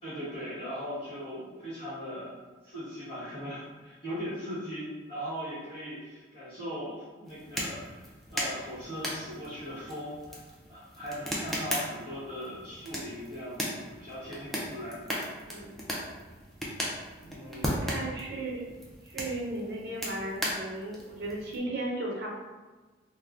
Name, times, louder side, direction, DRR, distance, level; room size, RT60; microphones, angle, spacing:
voice 1, 0.0-2.3 2.6-8.0 8.3-10.4 10.7-15.0 15.3-15.6 17.2-18.0, equal, 30° left, -11 dB, 1.1 m, -39 dB
sound 1, 7.3-21.6, equal, ahead, 0.4 m, -37 dB
voice 2, 15.4-15.8 17.5-18.6 19.0-22.3, right 2 dB, 55° right, -2 dB, 0.7 m, -36 dB
2.5 x 2.2 x 3.4 m, 1.3 s
head